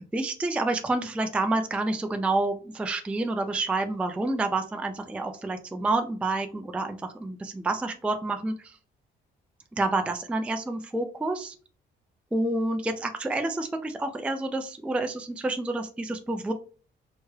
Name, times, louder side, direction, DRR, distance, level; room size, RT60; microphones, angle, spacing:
voice 1, 0.1-8.8 9.8-11.5 12.3-16.5, right 2 dB, 5° right, 6 dB, 0.3 m, -28 dB
3.1 x 2.8 x 2.3 m, 0.38 s
cardioid pair, 90°, 20 cm